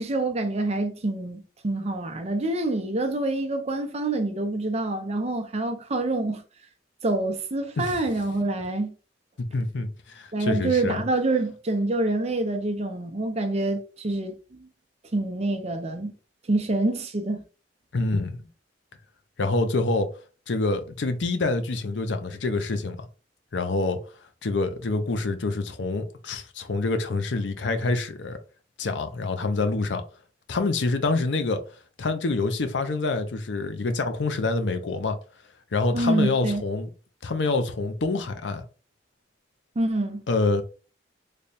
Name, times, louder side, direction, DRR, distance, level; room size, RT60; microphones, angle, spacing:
voice 1, 0.0-6.4 7.0-8.9 10.3-14.7 15.1-16.1 16.5-17.4 35.9-36.6 39.8-40.2, right 2 dB, 35° right, 0.6 m, -26 dB
voice 2, 9.5-11.0 17.9-18.5 19.4-20.1 20.5-23.1 23.5-24.0 24.4-28.4 28.8-30.0 30.5-31.6 32.0-35.2 35.7-36.9 37.2-38.6 40.3-40.6, left 3 dB, 75° left, 0.6 m, -26 dB
3.3 x 2.2 x 4.0 m
head